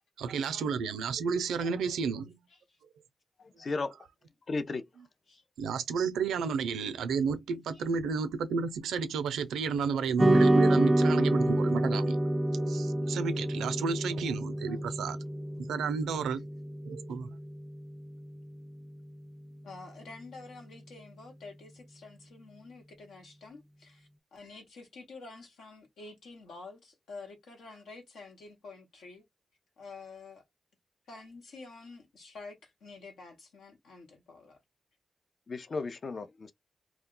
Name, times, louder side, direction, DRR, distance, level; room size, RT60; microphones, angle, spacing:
voice 1, 0.2-2.4 5.6-12.2 12.5-15.2 15.6-16.5 16.8-17.4, right 6 dB, 90° right, 0.4 m, -32 dB
voice 2, 3.4-4.0 4.5-4.8 35.5-36.5, left 3 dB, 55° left, 0.5 m, -35 dB
sound 1, 10.2-18.7, right 1 dB, 20° right, 0.3 m, -28 dB
voice 3, 14.6-15.0 16.3-16.4 19.6-29.2 29.8-30.4 31.1-34.6, left 3 dB, 85° left, 1.0 m, -49 dB
2.4 x 2.1 x 3.7 m
supercardioid pair, 40°, 0 cm